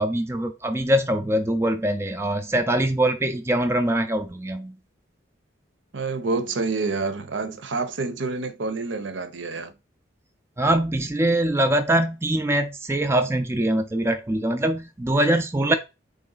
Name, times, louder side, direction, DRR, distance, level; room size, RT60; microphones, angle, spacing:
voice 1, 0.0-4.8 10.6-15.7, right 1 dB, 15° right, 0.3 m, -23 dB
voice 2, 5.9-9.7, right 3 dB, 75° right, 0.7 m, -28 dB
4.0 x 3.2 x 3.8 m
head